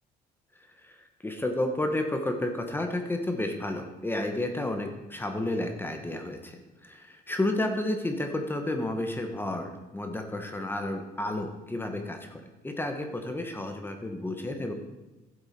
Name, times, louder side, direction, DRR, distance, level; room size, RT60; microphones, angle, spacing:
voice 1, 1.2-6.6 6.8-14.7, left 1 dB, 10° left, 5 dB, 1.1 m, -31 dB
11.5 x 7.8 x 4.3 m, 1.1 s
cardioid pair, 110°, 17 cm